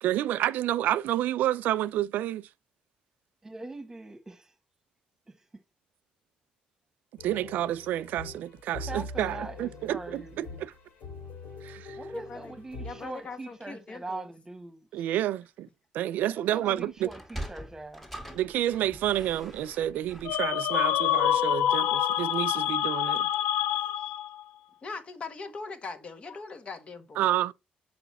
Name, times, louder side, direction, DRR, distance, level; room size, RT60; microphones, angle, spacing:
voice 1, 0.0-2.5 7.2-10.7 11.6-12.0 14.9-15.7 15.9-17.1 18.3-23.3 27.2-27.5, right 12 dB, 80° right, 0.4 m, -29 dB
voice 2, 3.4-4.4 8.8-10.6 12.0-14.8 16.3-18.1, right 2 dB, 15° right, 1.5 m, -41 dB
sound 1, 7.2-13.4, left 3 dB, 75° left, 3.9 m, -43 dB
voice 3, 12.1-12.5 12.8-14.3 24.0-24.1 24.8-27.3, left 4 dB, 40° left, 1.6 m, -41 dB
Sliding door, 17.0-21.6, right 1 dB, 5° left, 1.8 m, -43 dB
sound 2, 20.2-24.4, left 12 dB, 90° left, 0.4 m, -26 dB
6.9 x 5.0 x 4.2 m
cardioid pair, 95°, 3 cm